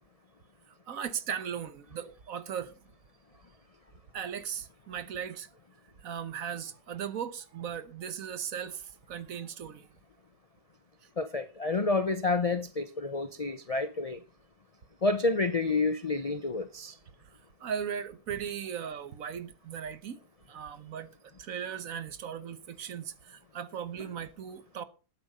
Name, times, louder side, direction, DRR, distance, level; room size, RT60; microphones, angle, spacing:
voice 1, 0.9-2.7 4.1-5.5 6.0-9.9 17.2-17.3 17.6-20.2 20.5-21.1 21.4-24.8, right 8 dB, 60° right, 1.3 m, -37 dB
voice 2, 11.2-14.2 15.0-16.9, left 3 dB, 55° left, 0.4 m, -29 dB
11.0 x 8.6 x 5.4 m
omnidirectional pair, 1.7 m